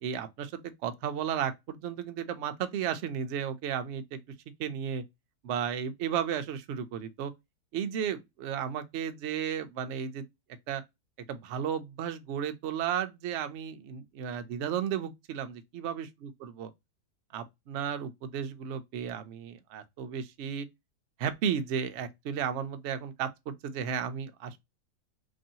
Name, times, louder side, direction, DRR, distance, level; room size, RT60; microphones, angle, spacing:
voice 1, 0.0-4.2 4.6-5.0 5.4-7.3 7.7-10.2 10.7-10.8 11.3-16.1 16.4-16.7 17.3-20.7 21.2-24.6, right 8 dB, 70° right, 0.6 m, -34 dB
3.0 x 2.6 x 2.7 m
omnidirectional pair, 1.7 m